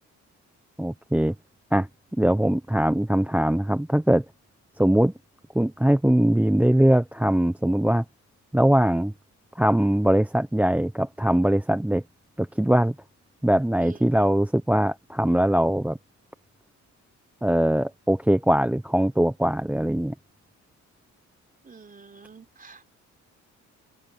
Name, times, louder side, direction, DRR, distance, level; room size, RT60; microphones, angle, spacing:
voice 1, 0.8-1.3 1.7-1.9 2.2-4.2 4.8-5.1 5.5-8.0 8.5-9.1 9.6-12.0 12.4-12.9 13.4-16.0 17.4-20.1, right 1 dB, 5° right, 1.1 m, -21 dB
voice 2, 21.6-22.8, right 4 dB, 30° right, 4.5 m, -47 dB
open air
cardioid pair, 90°, 30 cm